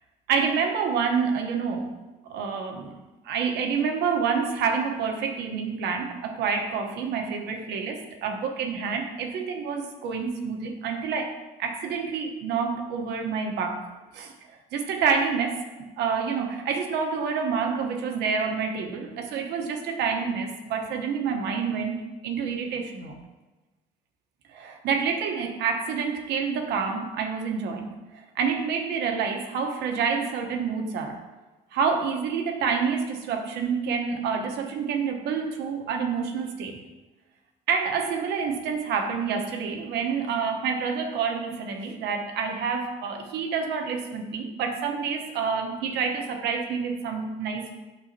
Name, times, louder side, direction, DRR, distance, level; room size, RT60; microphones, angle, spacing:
voice 1, 0.3-1.9 2.2-3.0 3.2-11.3 11.6-13.9 14.1-23.2 24.5-31.2 31.7-36.8 37.7-47.7, right 6 dB, 80° right, 4 dB, 1.1 m, -28 dB
9.5 x 6.3 x 2.8 m, 1.2 s
cardioid pair, 110°, 17 cm